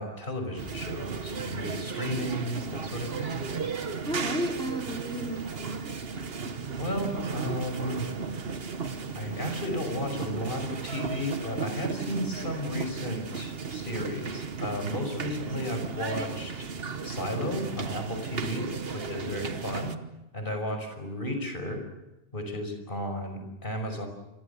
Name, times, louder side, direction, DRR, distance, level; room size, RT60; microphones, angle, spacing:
voice 1, 0.0-3.3 6.8-8.1 9.1-16.5 17.0-20.0 20.3-21.8 22.3-24.1, left 1 dB, 45° left, 6 dB, 5.8 m, -33 dB
sound 1, 0.6-20.0, right 5 dB, 55° right, 1.5 m, -35 dB
voice 2, 4.1-6.2, right 1 dB, 5° left, 0 dB, 4.0 m, -33 dB
29.5 x 24.0 x 7.0 m, 0.94 s
omnidirectional pair, 1.2 m